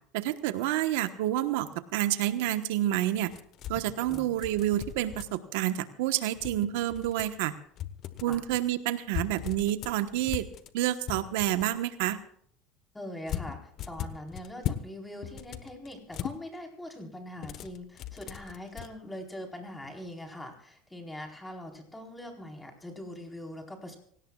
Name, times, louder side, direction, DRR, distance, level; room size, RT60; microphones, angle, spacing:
voice 1, 0.1-3.3 3.7-7.5 8.2-10.5 10.7-12.2, right 13 dB, 80° right, 10 dB, 1.2 m, -29 dB
sound 1, 3.3-5.6 6.3-7.4 7.8-8.6 9.1-11.8 13.3-14.9 15.2-16.4 17.4-18.9, left 10 dB, 50° left, 1.2 m, -38 dB
voice 2, 12.9-24.0, left 1 dB, 10° left, 2 dB, 4.3 m, -42 dB
25.5 x 18.0 x 2.4 m, 0.64 s
supercardioid pair, 125°, 0 cm